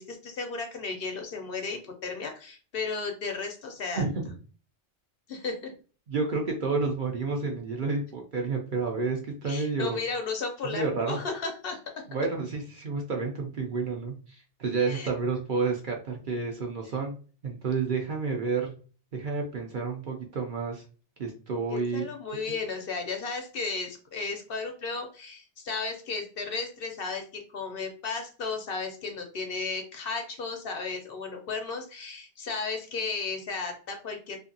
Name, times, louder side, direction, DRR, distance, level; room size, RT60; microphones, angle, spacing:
voice 1, 0.0-4.0 5.3-5.7 9.4-11.8 14.9-15.1 21.7-34.4, left 4 dB, 60° left, 4 dB, 0.7 m, -34 dB
voice 2, 6.1-10.0 10.6-11.2 12.1-14.1 14.6-17.2 17.4-18.7 19.1-20.8 21.2-22.0, right 4 dB, 55° right, 1 dB, 0.7 m, -30 dB
2.7 x 2.6 x 2.6 m, 0.38 s
omnidirectional pair, 1.2 m